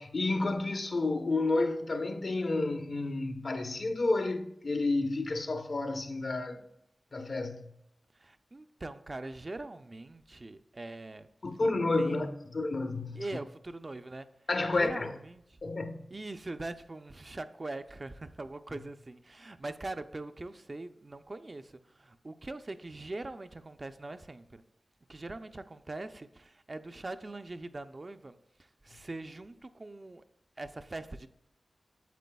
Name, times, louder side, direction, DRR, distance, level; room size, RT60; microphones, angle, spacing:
voice 1, 0.0-6.6 7.1-7.7 11.4-13.2 14.5-15.1 15.6-16.0, left 2 dB, 60° left, 0.8 m, -30 dB
voice 2, 8.1-11.3 12.0-12.2 13.1-14.3 14.7-15.4 16.1-24.6 25.1-28.4 28.8-30.2 30.6-31.3, right 2 dB, 40° right, 0.4 m, -42 dB
9.2 x 7.2 x 2.3 m
cardioid pair, 60°, 0 cm